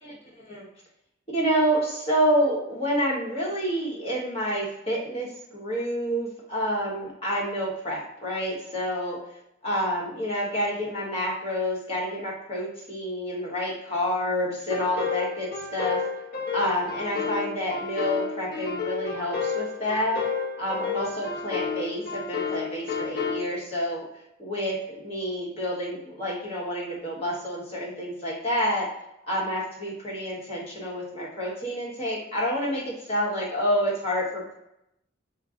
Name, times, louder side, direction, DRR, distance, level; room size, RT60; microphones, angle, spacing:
voice 1, 1.3-5.3 5.5-9.2 9.6-16.0 16.5-20.2 20.6-24.0 24.4-28.9 29.3-34.6, equal, 30° left, -4 dB, 1.2 m, -28 dB
sound 1, 14.7-23.4, left 5 dB, 50° left, 0.8 m, -31 dB
3.8 x 2.3 x 3.7 m, 0.83 s
head